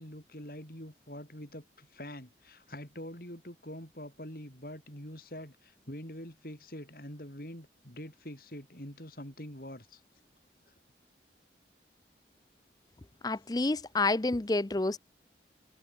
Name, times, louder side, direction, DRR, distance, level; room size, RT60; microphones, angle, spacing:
voice 1, 0.0-10.0 10.7-10.8, left 1 dB, 50° left, 7.2 m, -45 dB
voice 2, 13.2-15.0, left 2 dB, 20° left, 0.5 m, -29 dB
head